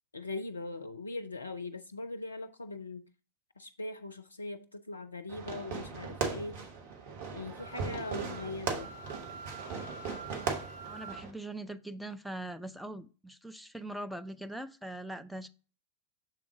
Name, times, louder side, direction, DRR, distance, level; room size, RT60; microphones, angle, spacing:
voice 1, 0.1-3.1 3.6-6.6 7.3-8.9, left 2 dB, 80° left, 0.4 m, -40 dB
Fireworks, 5.3-11.3, right 5 dB, 50° right, 1.2 m, -38 dB
Wind instrument woodwind instrument, 7.5-11.2, right 4 dB, 25° right, 1.1 m, -48 dB
voice 2, 10.8-15.5, right 1 dB, ahead, 0.4 m, -42 dB
6.6 x 3.6 x 4.7 m
figure-of-eight pair, 90°, 0 cm